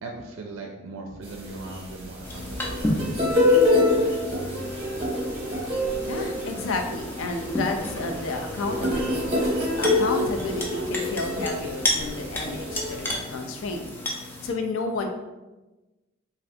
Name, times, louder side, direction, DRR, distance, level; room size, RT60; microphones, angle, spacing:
voice 1, 0.0-4.2, right 2 dB, 80° right, 2 dB, 0.4 m, -40 dB
sound 1, 1.2-13.2, left 2 dB, 30° right, 0.8 m, -26 dB
sound 2, 2.2-14.5, left 1 dB, 10° left, 0.4 m, -33 dB
voice 2, 6.1-9.3 9.8-13.8 14.4-15.1, left 3 dB, 80° left, 5 dB, 0.4 m, -31 dB
3.2 x 2.5 x 2.6 m, 1.1 s
head